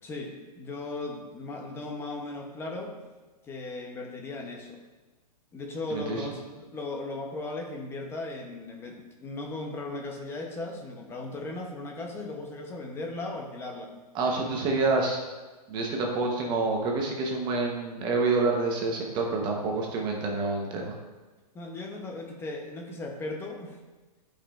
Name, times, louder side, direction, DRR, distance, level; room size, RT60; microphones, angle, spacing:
voice 1, 0.0-2.9 3.4-4.8 5.5-13.9 21.5-23.8, left 2 dB, 10° left, 1 dB, 0.7 m, -37 dB
voice 2, 5.9-6.3 14.1-15.2 15.7-20.9, right 3 dB, 20° right, 0 dB, 0.9 m, -27 dB
12.0 x 5.1 x 2.4 m, 1.2 s
hypercardioid pair, 150°, 21 cm